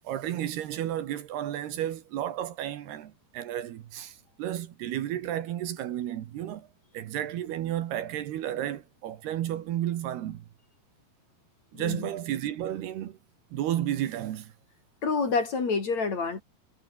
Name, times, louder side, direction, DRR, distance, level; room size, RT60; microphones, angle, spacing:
voice 1, 0.0-6.7 6.9-10.5 11.7-13.2 13.5-14.5, right 12 dB, 75° right, 3.4 m, -32 dB
voice 2, 11.7-12.1 15.0-16.4, left 4 dB, 40° left, 4.8 m, -28 dB
omnidirectional pair, 5.0 m